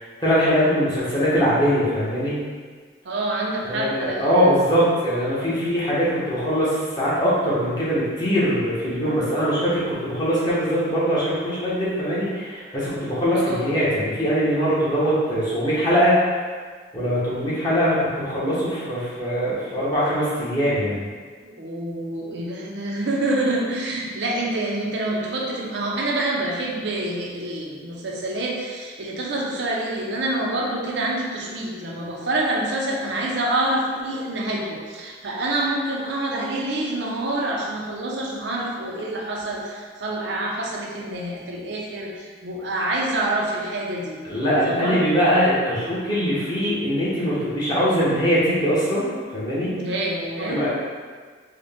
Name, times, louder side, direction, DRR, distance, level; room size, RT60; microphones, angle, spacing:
voice 1, 0.2-2.4 3.6-16.2 16.9-21.0 44.2-49.7 50.5-50.7, equal, 25° left, -9 dB, 1.0 m, -22 dB
voice 2, 3.0-4.6 13.3-13.7 21.4-44.2 44.7-45.0 49.7-50.7, right 1 dB, 75° right, -2 dB, 0.6 m, -27 dB
3.7 x 2.2 x 3.5 m, 1.6 s
head